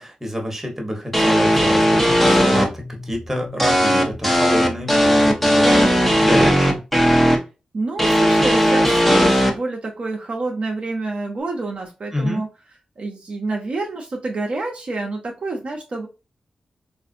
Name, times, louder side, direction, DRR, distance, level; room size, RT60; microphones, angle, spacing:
voice 1, 0.0-6.8 12.1-12.5, equal, 15° right, 2 dB, 1.2 m, -28 dB
sound 1, 1.1-2.6 3.6-7.4 8.0-9.5, equal, 5° left, 1.0 m, -16 dB
sound 2, 1.5-6.8, left 3 dB, 40° left, 1.3 m, -37 dB
voice 2, 7.7-12.5 13.0-16.1, right 3 dB, 55° right, 0 dB, 0.7 m, -28 dB
3.4 x 2.5 x 2.5 m, 0.29 s
cardioid pair, 50°, 2 cm